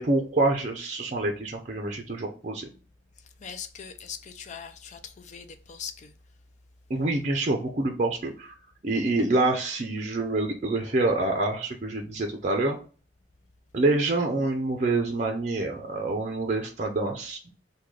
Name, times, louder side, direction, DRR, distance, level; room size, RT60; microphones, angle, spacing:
voice 1, 0.0-2.7 6.9-8.5 8.8-12.8 13.7-17.5, right 2 dB, 40° right, 0.5 m, -26 dB
voice 2, 3.4-6.1, left 7 dB, 40° left, 0.4 m, -41 dB
3.1 x 2.2 x 3.6 m
head